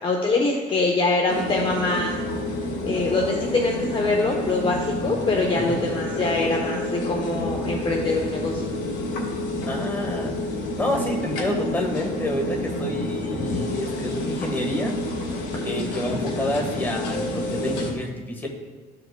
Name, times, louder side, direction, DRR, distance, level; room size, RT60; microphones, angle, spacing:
voice 1, 0.0-2.1 2.8-8.7, left 3 dB, 30° left, 0 dB, 0.9 m, -24 dB
sound 1, 1.3-17.9, left 1 dB, 85° left, 1.8 m, -29 dB
voice 2, 9.7-10.3 10.8-15.0 15.6-18.5, left 1 dB, 10° left, 0 dB, 1.5 m, -28 dB
14.0 x 4.8 x 2.3 m, 1.4 s
cardioid pair, 110°, 17 cm